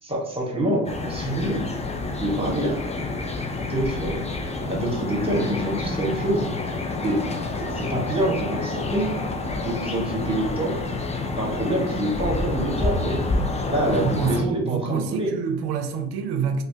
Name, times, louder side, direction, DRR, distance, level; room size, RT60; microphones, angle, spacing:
voice 1, 0.0-1.7 2.2-3.0 3.5-4.2 4.7-6.5 7.0-7.2 7.6-9.1 9.6-10.8 11.4-13.3 13.7-15.3, right 1 dB, 15° right, 1.3 m, -26 dB
sound 1, 0.8-14.4, left 3 dB, 15° left, 0.4 m, -28 dB
voice 2, 13.9-16.6, right 6 dB, 75° right, 0.6 m, -27 dB
3.1 x 2.1 x 2.7 m
supercardioid pair, 60°, 39 cm